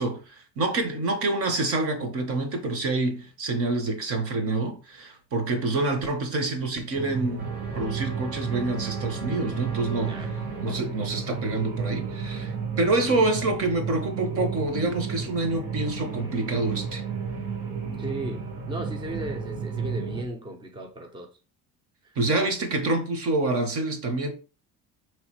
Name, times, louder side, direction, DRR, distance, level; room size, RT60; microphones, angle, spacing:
voice 1, 0.0-7.5 7.7-10.2 10.6-17.0 22.2-24.3, right 2 dB, 45° right, 1.1 m, -27 dB
sound 1, 6.9-20.2, right 5 dB, 85° right, 1.6 m, -33 dB
sound 2, 7.4-13.4, right 3 dB, 70° right, 1.8 m, -43 dB
voice 2, 18.0-21.3 22.0-22.1, right 1 dB, 15° right, 0.6 m, -36 dB
4.9 x 3.2 x 3.1 m
cardioid pair, 150°, 32 cm